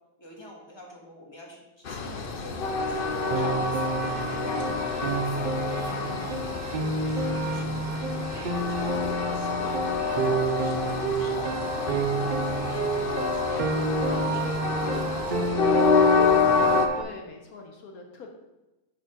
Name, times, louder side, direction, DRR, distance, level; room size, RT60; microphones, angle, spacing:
voice 1, 0.2-4.0 4.2-6.3 6.5-7.9 8.3-12.2 12.5-13.7 14.0-16.2, left 1 dB, 15° left, -2 dB, 1.7 m, -45 dB
Train, 1.9-16.9, left 4 dB, 50° left, 0.7 m, -27 dB
Piano, 3.3-17.0, right 3 dB, 80° right, 0.4 m, -30 dB
voice 2, 4.8-5.3 6.8-7.2 16.9-18.3, left 4 dB, 75° left, 2 dB, 1.4 m, -44 dB
7.1 x 4.9 x 5.9 m, 1.0 s
omnidirectional pair, 1.6 m